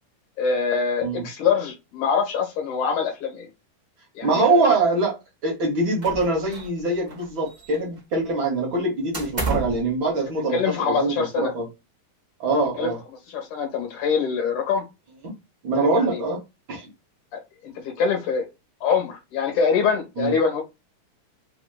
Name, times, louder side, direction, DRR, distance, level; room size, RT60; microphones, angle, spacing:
voice 1, 0.4-3.5 4.2-4.8 10.5-11.5 12.8-12.9 13.3-14.8 15.9-16.2 17.3-18.4 18.8-20.6, left 5 dB, 65° left, 2.8 m, -24 dB
voice 2, 4.2-11.7 12.4-13.0 15.6-16.4 16.7-16.9 20.2-20.3, right 3 dB, 50° right, 1.5 m, -23 dB
sound 1, 6.0-6.8 7.1-8.0 9.1-9.9, right 3 dB, 30° right, 0.8 m, -30 dB
5.9 x 2.9 x 2.4 m
omnidirectional pair, 4.0 m